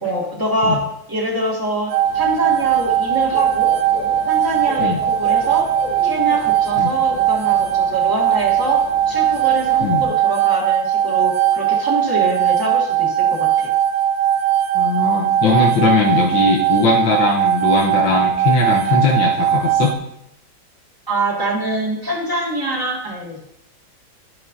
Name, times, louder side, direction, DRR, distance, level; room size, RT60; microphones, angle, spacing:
voice 1, 0.0-3.7 4.3-5.7 6.0-13.7 21.1-23.4, right 1 dB, 10° right, -4 dB, 1.9 m, -24 dB
sound 1, 1.9-20.0, right 10 dB, 85° right, 0.8 m, -19 dB
Dog / Bird, 2.0-10.0, left 2 dB, 90° left, 2.5 m, -36 dB
voice 2, 14.7-19.9, left 3 dB, 70° left, -2 dB, 1.7 m, -19 dB
13.0 x 5.4 x 2.7 m, 0.80 s
omnidirectional pair, 2.1 m